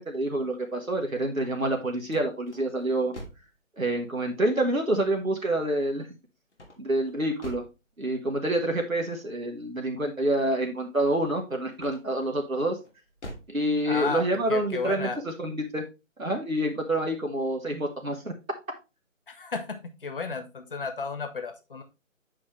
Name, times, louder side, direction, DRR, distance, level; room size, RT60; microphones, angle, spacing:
voice 1, 0.0-3.1 3.8-6.1 6.8-7.6 8.0-12.8 13.5-15.8 16.2-18.3, right 1 dB, 90° right, 2 dB, 1.6 m, -27 dB
sound 1, 1.2-3.6 6.5-7.8 11.7-12.3 12.8-13.6, equal, 60° left, 2.5 m, -45 dB
voice 2, 13.9-15.2 19.3-21.8, left 4 dB, 40° left, 8 dB, 1.2 m, -33 dB
8.5 x 5.0 x 3.1 m, 0.27 s
figure-of-eight pair, 150°, 40 cm